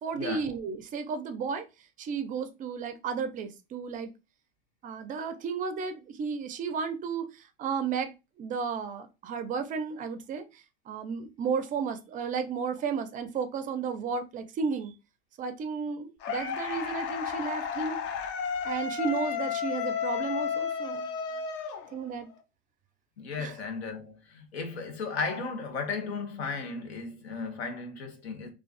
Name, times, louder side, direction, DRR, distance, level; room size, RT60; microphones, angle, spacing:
voice 1, 0.0-1.6 2.0-4.1 4.8-14.9 15.4-18.0 18.6-21.1 21.9-22.3 23.4-23.6, right 6 dB, 25° right, 0.4 m, -33 dB
sound 1, 16.2-22.3, left 7 dB, 40° left, 0.4 m, -32 dB
voice 2, 23.2-28.5, left 4 dB, 85° left, 0.8 m, -35 dB
2.3 x 2.3 x 2.3 m
hypercardioid pair, 90°, 31 cm